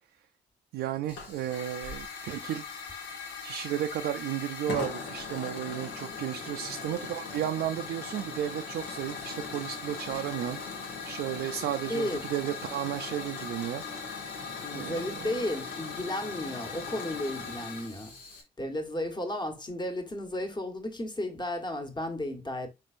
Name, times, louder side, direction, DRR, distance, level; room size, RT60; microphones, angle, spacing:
voice 1, 0.7-2.6 3.4-14.2 14.7-15.3, right 11 dB, 75° right, 0.5 m, -34 dB
Hiss / Fire, 1.1-18.4, left 5 dB, 85° left, 1.1 m, -39 dB
voice 2, 11.5-12.2 14.6-18.2 18.6-22.7, left 1 dB, 25° left, 1.3 m, -34 dB
4.8 x 3.7 x 2.5 m
supercardioid pair, 55°, 18 cm